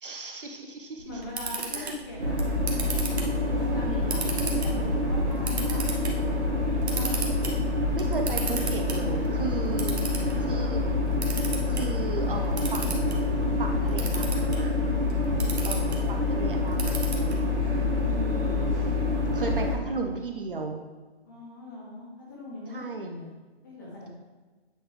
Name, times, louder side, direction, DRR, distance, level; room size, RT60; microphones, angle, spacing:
voice 1, 0.0-1.2 1.8-1.9 3.9-4.2 8.0-9.9 10.4-10.8 11.7-13.3 13.6-14.7 15.6-17.2 18.1-19.0 19.3-20.8 22.7-23.1, right 4 dB, 50° right, 4 dB, 0.7 m, -36 dB
voice 2, 1.0-2.4 3.5-6.0 6.6-7.2 9.8-10.9 21.2-23.3 23.6-24.1, left 2 dB, 15° left, -5 dB, 1.2 m, -41 dB
Camera, 1.0-17.7, right 3 dB, 65° right, 1.3 m, -37 dB
sound 1, 2.2-19.8, left 2 dB, 85° right, 1.8 m, -26 dB
8.5 x 3.9 x 3.3 m, 1.3 s
hypercardioid pair, 165°, 34 cm